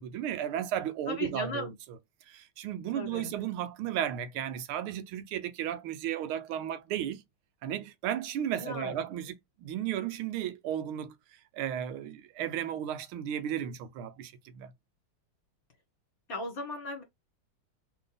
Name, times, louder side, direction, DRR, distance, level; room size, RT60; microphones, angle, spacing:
voice 1, 0.0-2.0 2.3-7.2 7.6-11.2 11.5-14.7, right 10 dB, 85° right, 1.5 m, -34 dB
voice 2, 1.1-1.7 2.9-3.3 8.6-8.9 16.3-17.0, left 3 dB, 45° left, 2.0 m, -37 dB
3.8 x 3.7 x 3.4 m
omnidirectional pair, 2.3 m